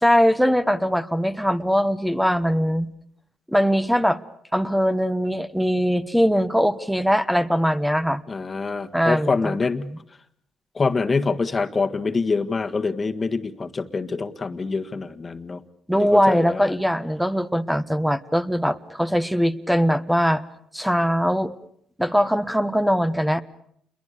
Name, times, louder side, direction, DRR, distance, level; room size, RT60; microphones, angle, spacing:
voice 1, 0.0-2.9 3.5-4.2 4.5-8.2 8.9-9.6 9.8-10.0 15.9-20.4 20.7-21.5 22.0-23.4, equal, ahead, 12 dB, 1.4 m, -21 dB
voice 2, 8.3-9.8 10.7-15.6 15.9-16.8, left 4 dB, 30° left, 8 dB, 1.7 m, -25 dB
29.0 x 22.5 x 6.7 m, 0.67 s
cardioid pair, 90°, 0 cm